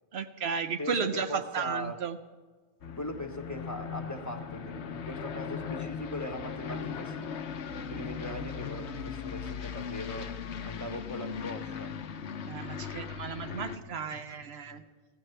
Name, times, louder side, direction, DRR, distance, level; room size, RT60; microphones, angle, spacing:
voice 1, 0.1-2.2 12.5-14.8, right 6 dB, 70° right, 10 dB, 0.9 m, -34 dB
voice 2, 0.8-2.0 3.0-7.3 7.9-10.3 10.6-11.9 14.1-14.4 14.6-14.8, left 1 dB, 15° left, 5 dB, 1.0 m, -40 dB
Aircraft, 2.8-13.8, left 6 dB, 80° left, 1.1 m, -38 dB
24.0 x 16.0 x 3.3 m, 1.4 s
omnidirectional pair, 1.1 m